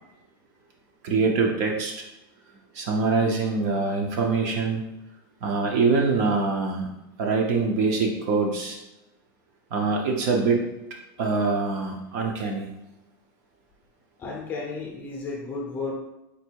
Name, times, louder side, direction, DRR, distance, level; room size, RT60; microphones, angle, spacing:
voice 1, 1.0-1.9 2.7-4.8 5.4-6.9 7.2-8.8 9.7-10.6 11.2-12.7, right 4 dB, 50° right, 1 dB, 0.8 m, -24 dB
voice 2, 14.2-15.9, left 3 dB, 15° left, -2 dB, 0.7 m, -33 dB
4.0 x 2.6 x 4.6 m, 0.91 s
supercardioid pair, 175°, 12 cm